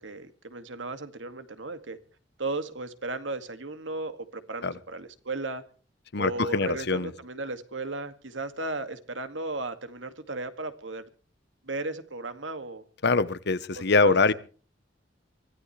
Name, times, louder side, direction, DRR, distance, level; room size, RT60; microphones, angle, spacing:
voice 1, 0.0-2.0 2.4-5.6 6.2-11.0 11.6-12.8 13.7-14.2, right 2 dB, 85° right, 2.2 m, -35 dB
voice 2, 6.1-7.1 13.0-14.3, left 3 dB, 60° left, 1.1 m, -23 dB
24.5 x 16.0 x 3.3 m
head